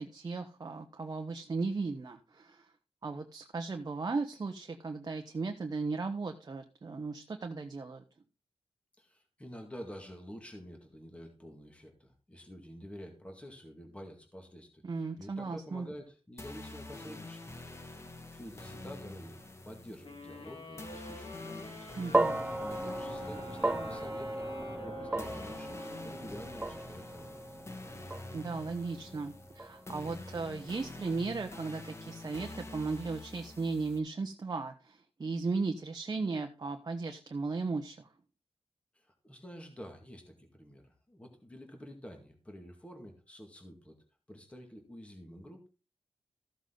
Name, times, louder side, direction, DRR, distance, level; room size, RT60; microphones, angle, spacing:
voice 1, 0.0-2.7 3.0-8.0 14.8-15.9 22.0-22.4 28.3-38.1, right 4 dB, 40° right, 4 dB, 1.1 m, -36 dB
voice 2, 9.0-17.5 18.3-19.4 19.6-21.9 22.6-24.4 24.8-27.5 38.9-44.0 44.3-45.7, equal, 10° left, 3 dB, 2.2 m, -49 dB
sound 1, 16.4-34.0, left 2 dB, 25° left, 1.6 m, -47 dB
sound 2, 20.0-26.6, left 2 dB, 65° left, 4.5 m, -49 dB
sound 3, 22.1-30.5, right 2 dB, 10° right, 0.6 m, -36 dB
14.0 x 7.3 x 3.9 m, 0.33 s
wide cardioid pair, 120°, 10 cm